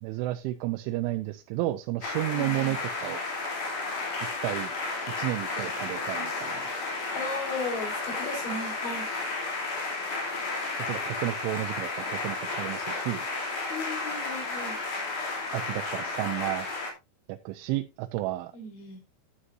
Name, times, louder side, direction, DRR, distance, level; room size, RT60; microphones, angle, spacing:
voice 1, 0.0-3.2 4.4-4.7 5.2-6.7 10.8-13.2 15.5-16.7 17.3-18.5, right 16 dB, 90° right, 7 dB, 3.2 m, -32 dB
sound 1, 2.0-16.9, left 3 dB, 45° left, 4.0 m, -33 dB
voice 2, 2.3-2.7 7.1-9.1 13.7-14.7 18.5-19.0, left 3 dB, 75° left, 2 dB, 6.4 m, -36 dB
13.0 x 9.8 x 2.7 m, 0.24 s
omnidirectional pair, 5.4 m